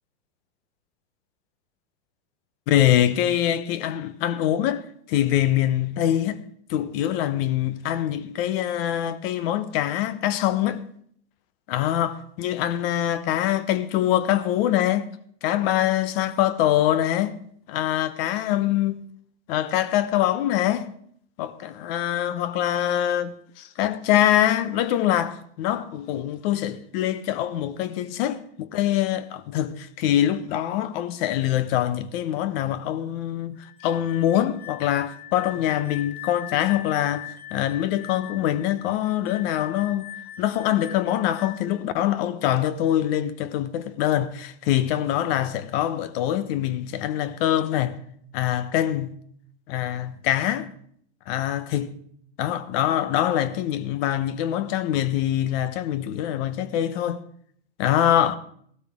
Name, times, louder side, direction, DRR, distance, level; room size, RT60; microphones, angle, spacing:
voice 1, 2.7-4.8 5.1-6.4 6.7-10.8 11.7-15.1 15.4-17.4 17.7-19.0 19.5-20.9 21.4-40.1 40.4-48.0 48.3-49.1 49.7-50.7 51.3-52.0 52.4-57.2 57.8-58.4, left 12 dB, 50° left, 1.1 m, -24 dB
sound 1, 33.6-41.8, left 13 dB, 5° left, 1.1 m, -41 dB
16.0 x 12.5 x 3.6 m
supercardioid pair, 135°, 37 cm